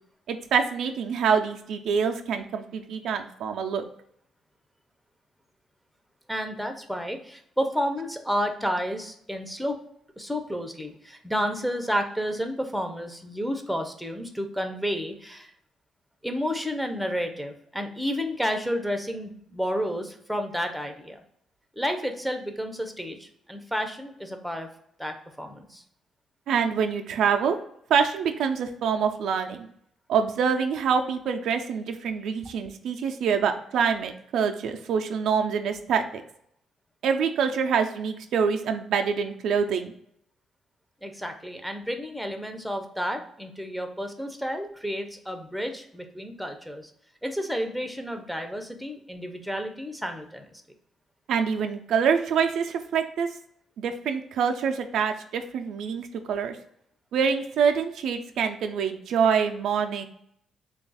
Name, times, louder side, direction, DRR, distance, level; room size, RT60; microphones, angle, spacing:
voice 1, 0.3-3.8 26.5-27.6 27.9-29.7 30.1-36.2 37.0-39.9 51.3-53.3 53.8-56.6 57.1-60.1, right 6 dB, 75° right, 5 dB, 0.3 m, -25 dB
voice 2, 6.3-9.8 10.2-15.5 16.2-21.2 21.8-24.7 25.0-25.8 41.0-46.9 47.2-50.6, equal, ahead, 4 dB, 0.5 m, -31 dB
3.3 x 2.3 x 3.9 m, 0.71 s
cardioid pair, 90°, 0 cm